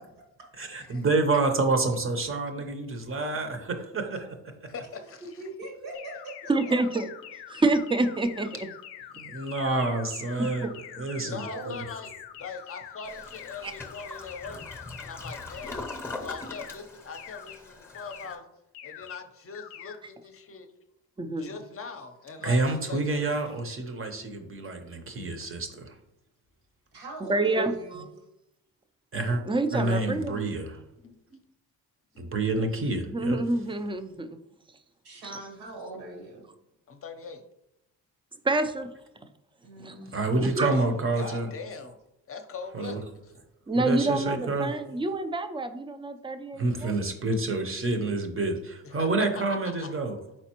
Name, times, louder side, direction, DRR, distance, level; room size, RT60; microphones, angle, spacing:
voice 1, 0.6-4.4 9.2-10.7 11.0-11.4 22.4-25.9 29.1-29.4 29.7-30.8 32.2-33.4 40.1-41.5 42.7-43.0 43.8-44.7 46.6-50.2, right 2 dB, 35° right, 6 dB, 0.8 m, -28 dB
voice 2, 2.6-3.0 3.3-3.5 4.7-5.5 5.9-6.2 11.2-14.6 15.0-15.9 16.2-18.5 18.8-20.7 21.4-23.5 31.0-31.1 36.9-37.4 40.6-42.0 42.3-43.4 48.8-49.1 49.3-49.9 50.3-50.4, left 5 dB, 35° left, 6 dB, 0.7 m, -41 dB
voice 3, 4.9-6.7 11.1-11.9 26.9-28.1 29.9-30.0 35.0-36.5 39.6-40.1 44.0-44.7, right 2 dB, 80° right, 0 dB, 1.6 m, -42 dB
sound 1, 5.9-16.0 16.3-16.8 17.1-17.6 17.9-18.4 18.7-19.2 19.5-20.0, left 11 dB, 85° left, 0.5 m, -44 dB
voice 4, 6.5-8.7 9.2-9.3 10.4-10.7 13.6-13.7 21.2-21.5 25.2-25.3 27.3-28.0 29.5-30.4 30.7-30.8 33.0-34.4 34.7-34.8 35.2-35.4 38.4-38.9 39.8-40.1 40.4-40.7 43.7-46.9, right 2 dB, 15° right, 8 dB, 0.4 m, -28 dB
Toilet flush, 13.0-18.4, left 2 dB, 5° left, 0.8 m, -41 dB
4.4 x 4.0 x 2.9 m, 0.84 s
supercardioid pair, 70°, 39 cm